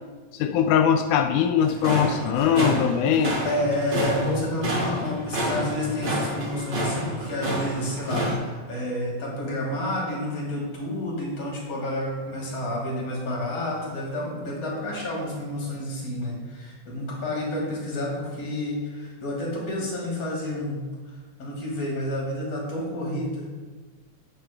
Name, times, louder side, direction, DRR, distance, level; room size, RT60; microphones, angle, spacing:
voice 1, 0.3-3.4, left 8 dB, 85° left, 6 dB, 1.8 m, -21 dB
sound 1, 1.6-8.3, equal, 35° right, 2.3 m, -29 dB
voice 2, 3.4-20.8 21.4-23.7, left 1 dB, 45° left, -4 dB, 3.6 m, -30 dB
14.5 x 9.3 x 2.2 m, 1.4 s
omnidirectional pair, 4.1 m